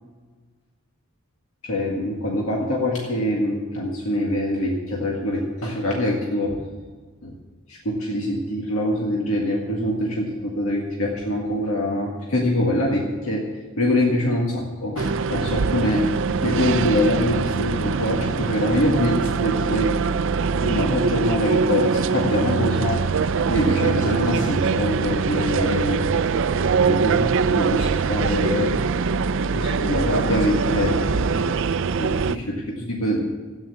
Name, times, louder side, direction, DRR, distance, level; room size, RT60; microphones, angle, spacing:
voice 1, 1.6-6.6 7.2-7.3 7.7-13.5 13.8-16.1 16.4-19.9 20.6-23.0 23.5-26.0 26.8-28.7 29.5-31.6 32.0-33.2, left 1 dB, 85° left, -2 dB, 1.9 m, -24 dB
sound 1, 15.0-32.4, right 5 dB, 65° right, 0.4 m, -23 dB
13.5 x 9.4 x 8.3 m, 1.4 s
head